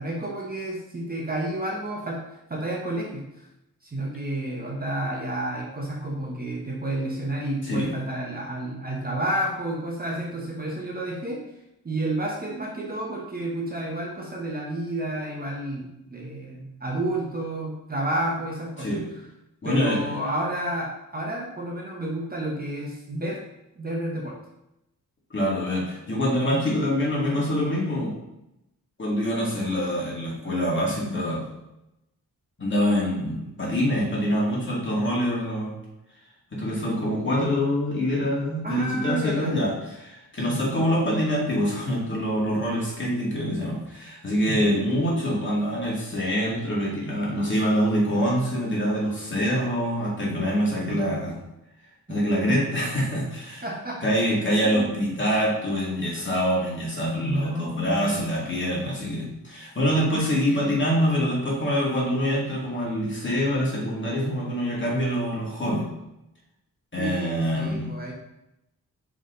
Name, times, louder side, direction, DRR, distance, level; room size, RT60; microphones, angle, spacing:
voice 1, 0.0-2.2 2.5-3.2 3.8-11.5 11.8-18.9 19.6-23.4 23.8-24.4 38.6-39.5 40.5-40.6 44.5-44.7 50.9-51.1 52.5-52.6 53.6-54.0 54.5-54.9 57.2-58.3 67.0-68.1, right 1 dB, 25° right, -2 dB, 1.1 m, -30 dB
voice 2, 19.6-20.0 25.3-28.1 29.0-31.5 32.6-35.7 36.5-51.4 52.1-53.7 54.0-65.9 66.9-67.9, equal, 35° left, -5 dB, 2.3 m, -25 dB
5.3 x 4.9 x 3.8 m, 0.88 s
wide cardioid pair, 115°, 34 cm